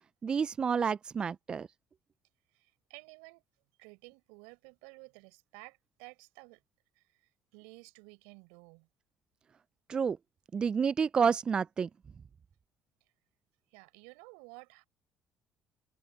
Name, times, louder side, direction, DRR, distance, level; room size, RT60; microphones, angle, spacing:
voice 1, 0.2-1.7 9.9-10.2 10.5-11.9, right 6 dB, 40° right, 0.3 m, -29 dB
voice 2, 2.5-3.4 3.8-6.6 6.9-7.0 7.5-8.9 13.7-14.8, right 31 dB, 80° right, 4.9 m, -53 dB
open air
hypercardioid pair, 65°, 2 cm